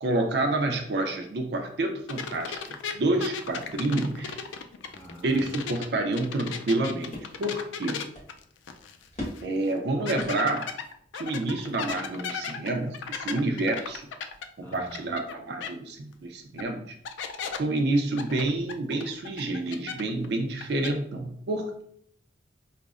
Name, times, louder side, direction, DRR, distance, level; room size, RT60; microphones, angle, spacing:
voice 1, 0.0-4.4 5.2-8.0 9.4-10.7 11.1-14.0 14.6-16.9 17.6-21.8, right 2 dB, 60° right, 4 dB, 0.4 m, -28 dB
sound 1, 2.1-5.9 6.2-9.1 9.4-9.5 10.1-15.3 15.6-15.7 16.6-16.7 17.0-17.6 18.2-20.3 20.5-20.9, left 6 dB, 85° left, 0.3 m, -36 dB
voice 2, 4.9-5.7 14.6-15.1, equal, 15° left, -4 dB, 0.9 m, -46 dB
sound 2, 5.0-12.5, left 1 dB, 40° left, 1.0 m, -45 dB
4.9 x 2.0 x 2.4 m, 0.66 s
head